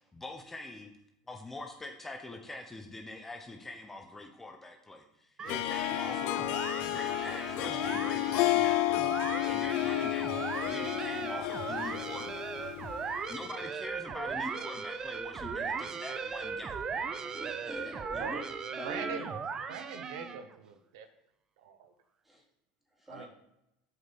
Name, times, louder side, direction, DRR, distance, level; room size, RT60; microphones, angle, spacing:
voice 1, 0.1-0.9 1.3-6.5 6.8-9.1 9.5-10.4 10.6-12.7 13.3-16.8, left 2 dB, 15° left, 4 dB, 1.0 m, -44 dB
sound 1, 5.4-20.5, right 5 dB, 30° right, 0.8 m, -38 dB
Harp, 5.5-13.2, left 16 dB, 65° left, 0.4 m, -31 dB
voice 2, 17.3-19.3 22.2-22.4 23.0-23.3, equal, 10° right, -2 dB, 3.1 m, -44 dB
voice 3, 18.7-19.3 19.7-21.1 21.6-21.9 23.1-23.2, right 7 dB, 80° right, 7 dB, 1.0 m, -42 dB
7.9 x 5.1 x 7.0 m, 0.84 s
supercardioid pair, 110°, 2 cm